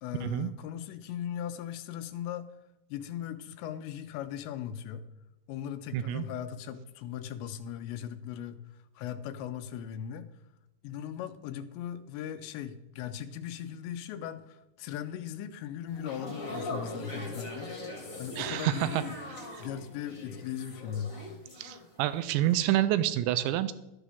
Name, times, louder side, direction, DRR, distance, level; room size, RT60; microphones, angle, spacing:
voice 1, 0.0-2.5 2.9-5.0 5.5-8.6 9.0-10.3 10.8-17.7 18.2-19.2 19.6-21.1, left 9 dB, 80° left, 10 dB, 2.8 m, -38 dB
voice 2, 5.9-6.2 18.4-19.0 21.6-23.7, right 13 dB, 85° right, 13 dB, 2.8 m, -28 dB
sound 1, 15.9-22.1 22.4-22.7, left 1 dB, 30° left, 1.5 m, -41 dB
12.0 x 11.0 x 3.6 m, 0.94 s
omnidirectional pair, 5.3 m